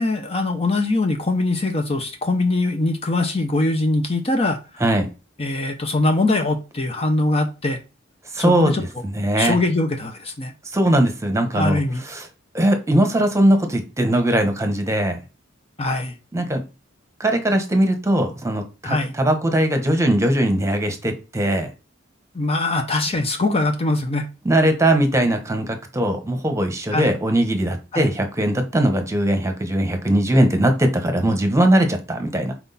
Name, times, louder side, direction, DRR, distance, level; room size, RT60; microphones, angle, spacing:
voice 1, 0.0-4.8 5.4-7.8 8.4-8.8 9.4-10.5 11.5-12.0 15.8-16.2 18.8-19.2 22.3-24.3 26.9-27.2 27.9-28.1, left 2 dB, 30° left, 0.7 m, -22 dB
voice 2, 8.3-8.9 9.1-9.6 10.7-11.8 12.1-12.3 12.5-15.2 16.3-16.6 17.2-21.7 24.4-32.5, right 1 dB, 15° right, 1.1 m, -20 dB
6.2 x 4.5 x 4.1 m
head